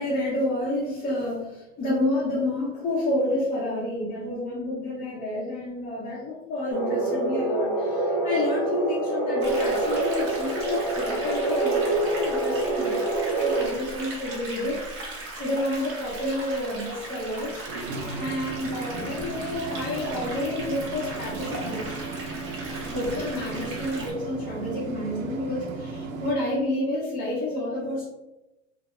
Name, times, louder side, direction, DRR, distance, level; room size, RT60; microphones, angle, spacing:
voice 1, 0.0-17.6 18.1-22.0 22.9-28.1, left 1 dB, 25° left, -8 dB, 0.7 m, -29 dB
sound 1, 6.7-13.7, right 2 dB, ahead, 1.1 m, -26 dB
sound 2, 9.4-24.1, right 2 dB, 35° right, 0.9 m, -38 dB
sound 3, 17.4-26.3, right 3 dB, 90° right, 0.6 m, -35 dB
2.2 x 2.0 x 3.0 m, 0.96 s
supercardioid pair, 115°, 38 cm